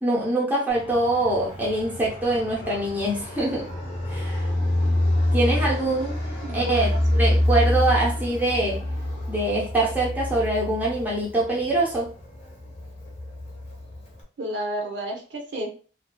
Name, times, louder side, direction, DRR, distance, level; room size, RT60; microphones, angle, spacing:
voice 1, 0.0-3.7 4.1-4.5 5.3-6.2 6.5-6.9 7.2-8.8 9.3-12.1, right 1 dB, 10° right, -4 dB, 0.6 m, -24 dB
Fixed-wing aircraft airplane, 0.7-14.2, left 1 dB, 35° left, 0.7 m, -27 dB
voice 2, 6.4-7.0 14.4-15.7, right 1 dB, 70° right, 1 dB, 0.7 m, -31 dB
2.5 x 2.2 x 2.2 m, 0.37 s
head